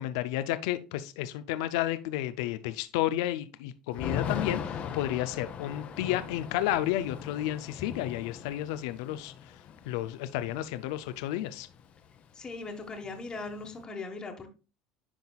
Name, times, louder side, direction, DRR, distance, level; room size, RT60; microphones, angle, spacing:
voice 1, 0.0-9.5 9.8-11.7, left 13 dB, 75° left, 12 dB, 0.4 m, -32 dB
Thunder / Rain, 3.9-11.8 12.1-12.2 12.5-13.8, left 8 dB, 45° left, 0.8 m, -39 dB
voice 2, 12.3-14.5, left 3 dB, 30° left, 3 dB, 1.3 m, -39 dB
10.5 x 3.9 x 2.3 m, 0.32 s
hypercardioid pair, 80°, 3 cm